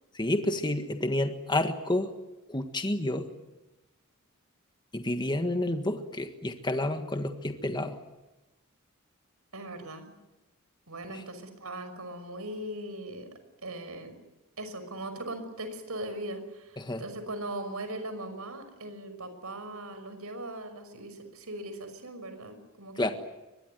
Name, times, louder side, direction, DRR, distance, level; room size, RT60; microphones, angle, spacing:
voice 1, 0.1-2.1 2.5-3.3 4.9-8.0 11.1-11.2 16.8-17.0 23.0-23.1, left 1 dB, 20° left, 6 dB, 1.6 m, -29 dB
voice 2, 9.5-10.1 10.9-13.3 13.6-14.1 14.6-23.1, right 1 dB, 80° right, 9 dB, 5.7 m, -39 dB
24.0 x 21.0 x 9.3 m, 1.0 s
head